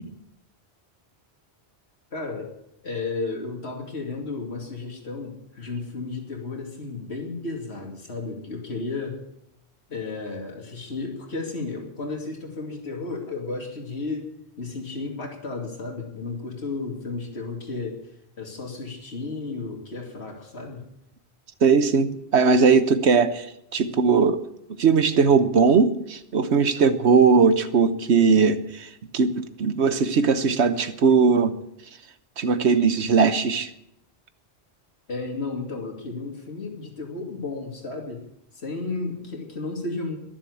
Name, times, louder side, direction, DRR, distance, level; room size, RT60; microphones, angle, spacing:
voice 1, 2.1-2.5 2.8-9.2 9.9-14.3 14.6-18.1 18.4-20.8 35.1-38.2 38.5-40.2, left 3 dB, 75° left, 1 dB, 2.8 m, -33 dB
voice 2, 21.6-23.5 23.7-24.4 24.8-31.5 32.4-33.7, right 5 dB, 85° right, 12 dB, 1.3 m, -19 dB
22.0 x 7.4 x 8.5 m, 0.80 s
omnidirectional pair, 1.1 m